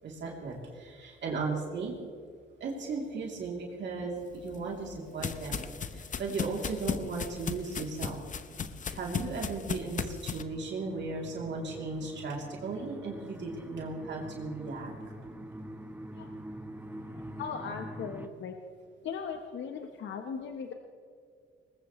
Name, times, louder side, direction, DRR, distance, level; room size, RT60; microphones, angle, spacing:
voice 1, 0.0-1.9 2.6-8.2 8.9-14.9, right 4 dB, 65° right, -2 dB, 3.1 m, -36 dB
sound 1, 4.3-10.4, left 6 dB, 40° left, 0.8 m, -36 dB
sound 2, 10.4-18.3, right 1 dB, 10° right, 1.1 m, -44 dB
voice 2, 16.9-18.6 19.0-20.7, left 6 dB, 70° left, 5 dB, 1.1 m, -39 dB
20.5 x 19.5 x 3.2 m, 2.1 s
cardioid pair, 90°, 20 cm